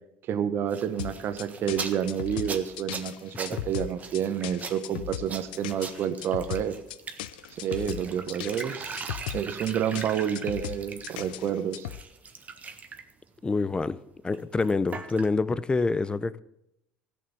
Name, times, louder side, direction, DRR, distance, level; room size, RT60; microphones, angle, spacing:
voice 1, 0.3-6.8 7.6-11.9, right 9 dB, 50° right, 1.1 m, -29 dB
sound 1, 0.7-11.4 11.7-13.1 14.3-15.2, right 5 dB, 30° right, 1.5 m, -40 dB
sound 2, 1.0-12.0, left 13 dB, 80° left, 0.5 m, -37 dB
voice 2, 13.4-14.0 14.2-16.4, left 3 dB, 20° left, 0.7 m, -26 dB
15.5 x 6.8 x 7.0 m
hypercardioid pair, 75°, 5 cm